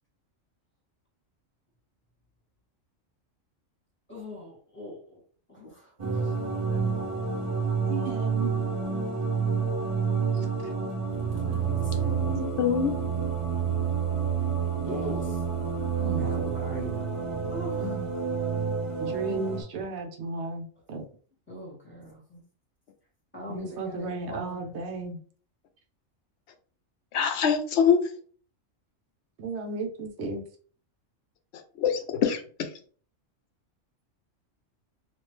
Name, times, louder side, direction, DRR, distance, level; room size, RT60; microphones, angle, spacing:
voice 1, 4.1-5.2 5.5-6.3 11.3-12.6 14.8-15.4 16.2-17.0 17.5-17.9 21.5-22.4 23.3-24.6, left 1 dB, 10° left, 1.6 m, -40 dB
sound 1, 6.0-19.6, right 6 dB, 30° right, 0.8 m, -29 dB
voice 2, 7.9-8.6 10.3-10.5 15.9-16.6 17.8-18.1 19.0-21.1 23.5-25.2 29.4-30.4, right 3 dB, 65° right, 1.0 m, -34 dB
voice 3, 12.6-12.9 27.1-28.0 31.8-32.7, left 7 dB, 65° left, 0.8 m, -24 dB
3.1 x 2.5 x 3.1 m
omnidirectional pair, 1.3 m